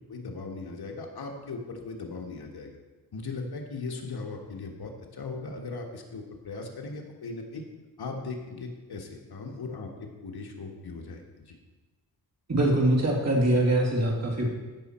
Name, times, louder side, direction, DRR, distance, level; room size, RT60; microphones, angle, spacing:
voice 1, 0.1-2.8 3.1-7.6 8.0-11.6, left 3 dB, 70° left, 2 dB, 1.6 m, -38 dB
voice 2, 12.5-14.5, right 1 dB, 40° right, -2 dB, 2.4 m, -23 dB
15.0 x 6.3 x 4.4 m, 1.2 s
wide cardioid pair, 105°, 39 cm